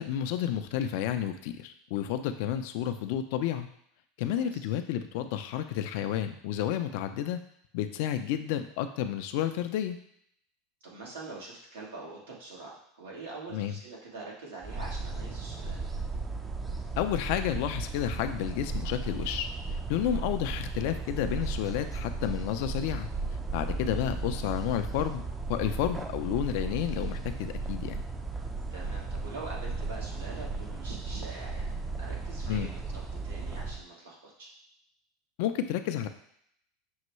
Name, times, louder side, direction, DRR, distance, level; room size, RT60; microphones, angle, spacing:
voice 1, 0.0-3.7 4.2-7.4 7.7-10.0 13.5-13.8 17.0-23.1 23.5-25.2 25.5-28.0 32.5-32.7 35.4-36.1, left 10 dB, 65° left, 8 dB, 0.4 m, -31 dB
voice 2, 10.8-15.9 20.0-20.2 28.7-31.7 32.0-32.8 33.2-34.5, right 3 dB, 85° right, -4 dB, 1.4 m, -44 dB
sound 1, 14.6-33.8, right 3 dB, 20° right, 0.4 m, -35 dB
6.2 x 2.2 x 3.1 m, 0.70 s
hypercardioid pair, 100°, 0 cm